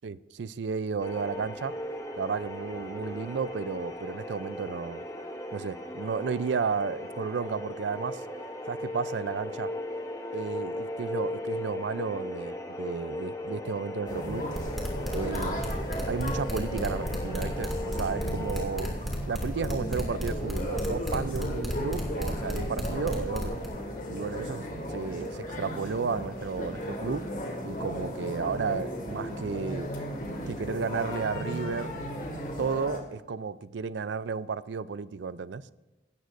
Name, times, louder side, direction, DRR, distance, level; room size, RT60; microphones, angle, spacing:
voice 1, 0.0-1.7 2.2-5.0 5.5-8.2 8.7-9.7 10.3-14.4 15.1-15.6 16.1-18.9 19.3-23.6 24.1-27.2 27.6-29.9 30.5-31.9 32.6-35.7, right 5 dB, 75° right, 17 dB, 0.4 m, -33 dB
sound 1, 1.0-18.7, left 1 dB, 15° left, 0.9 m, -37 dB
sound 2, 14.1-33.0, equal, 45° left, 2.0 m, -35 dB
sound 3, 14.5-23.7, equal, ahead, 2.1 m, -33 dB
17.0 x 13.0 x 2.6 m, 1.1 s
head